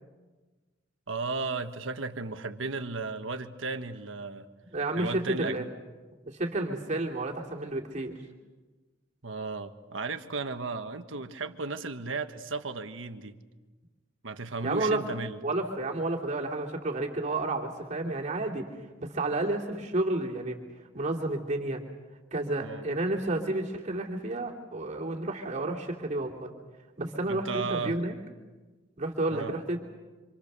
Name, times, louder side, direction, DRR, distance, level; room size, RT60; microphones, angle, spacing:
voice 1, 1.1-4.5 5.0-5.7 9.2-13.3 14.2-15.4 22.6-22.8 27.3-28.0 29.3-29.5, right 3 dB, 70° right, 7 dB, 1.5 m, -35 dB
voice 2, 4.7-5.6 6.3-8.1 14.6-15.0 15.4-18.7 19.0-20.6 20.9-21.8 22.3-26.5 27.0-28.1 29.0-29.8, right 2 dB, 35° right, -1 dB, 2.8 m, -31 dB
26.5 x 26.5 x 6.9 m, 1.3 s
head